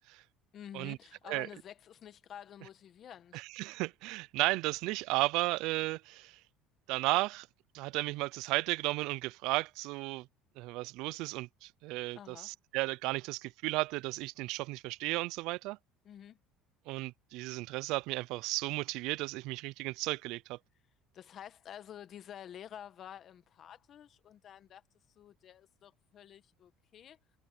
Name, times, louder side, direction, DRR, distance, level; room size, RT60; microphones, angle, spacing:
voice 1, 0.5-3.5 12.1-12.5 16.0-16.4 21.1-27.2, left 9 dB, 45° left, 1.6 m, -50 dB
voice 2, 3.3-6.4 6.9-7.5 7.7-10.3 10.6-15.8 16.9-20.6, right 21 dB, 70° right, 0.4 m, -34 dB
cardioid pair, 130°, 0 cm